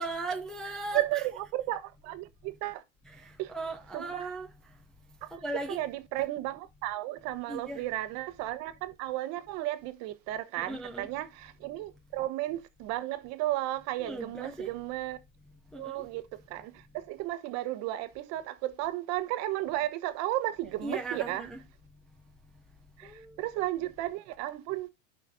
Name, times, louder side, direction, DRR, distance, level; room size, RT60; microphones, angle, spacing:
voice 1, 0.0-1.2 3.1-3.2 3.5-4.5 5.4-5.8 7.5-7.8 10.6-11.1 14.0-14.7 15.7-15.9 20.8-21.6 23.0-23.5, right 2 dB, ahead, 0.5 m, -37 dB
voice 2, 0.9-2.8 3.4-3.5 3.9-4.3 5.2-5.3 5.7-15.2 15.7-16.2 16.5-21.4 23.0-23.1 23.4-24.9, right 15 dB, 45° right, 1.0 m, -34 dB
11.5 x 5.8 x 2.7 m
supercardioid pair, 135°, 37 cm